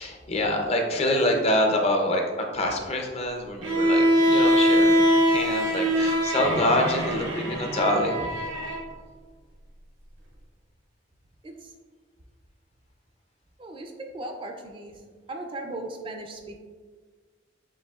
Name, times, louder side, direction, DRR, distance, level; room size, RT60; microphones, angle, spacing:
voice 1, 0.0-2.2 2.5-8.3, left 1 dB, 30° left, 2 dB, 0.5 m, -26 dB
Bowed string instrument, 3.6-8.8, equal, 80° right, 0.8 m, -22 dB
voice 2, 13.6-15.0 15.3-16.6, right 2 dB, 25° right, 3 dB, 0.3 m, -37 dB
7.0 x 2.7 x 2.3 m, 1.5 s
head